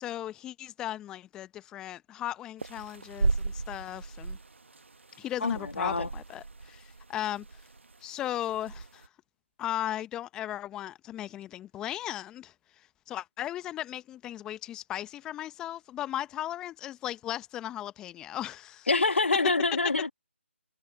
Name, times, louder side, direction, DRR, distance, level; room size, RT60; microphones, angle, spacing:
voice 1, 0.0-4.4 5.2-7.4 8.0-9.1 9.6-18.9, left 12 dB, 10° left, 1.1 m, -37 dB
sound 1, 2.6-9.1, right 3 dB, 70° right, 1.5 m, -36 dB
voice 2, 5.4-6.1 18.9-20.1, left 3 dB, 70° left, 1.5 m, -26 dB
figure-of-eight pair, 150°, 7 cm